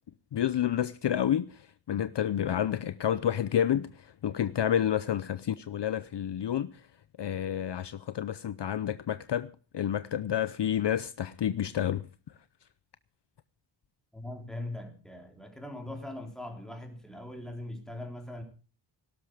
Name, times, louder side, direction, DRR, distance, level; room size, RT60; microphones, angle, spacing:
voice 1, 0.3-6.7 7.2-12.0, left 10 dB, 55° left, 0.7 m, -29 dB
voice 2, 14.1-18.4, left 1 dB, ahead, 3.7 m, -41 dB
17.5 x 12.5 x 4.9 m
wide cardioid pair, 130°, 49 cm